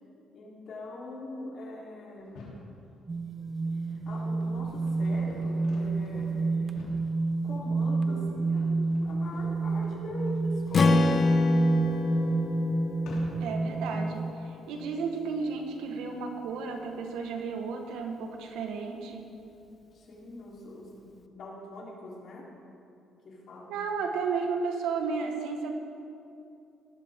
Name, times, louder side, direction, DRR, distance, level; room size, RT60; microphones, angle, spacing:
voice 1, 0.3-2.6 3.9-6.7 7.4-11.2 19.9-22.5 23.2-23.8, left 1 dB, 60° left, -4 dB, 3.9 m, -42 dB
sound 1, 2.2-2.7 3.3-13.7, left 2 dB, 80° left, 3.4 m, -51 dB
sound 2, 3.1-14.3, right 3 dB, 25° right, 0.8 m, -29 dB
Strum, 10.7-15.0, left 4 dB, 40° left, 0.8 m, -28 dB
voice 2, 13.4-19.3 23.7-25.7, right 5 dB, 90° right, 3 dB, 1.6 m, -33 dB
18.0 x 12.5 x 3.8 m, 2.7 s
cardioid pair, 105°, 0 cm